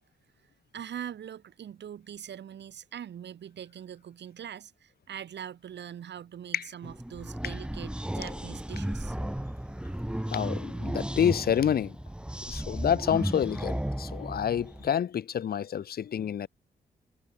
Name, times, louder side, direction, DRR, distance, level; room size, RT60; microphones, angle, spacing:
voice 1, 0.7-9.2, right 9 dB, 70° right, 2.5 m, -42 dB
sound 1, 6.8-14.9, right 1 dB, 5° right, 2.2 m, -34 dB
voice 2, 10.3-12.0 12.5-16.5, left 9 dB, 55° left, 0.8 m, -28 dB
cardioid pair, 80°, 19 cm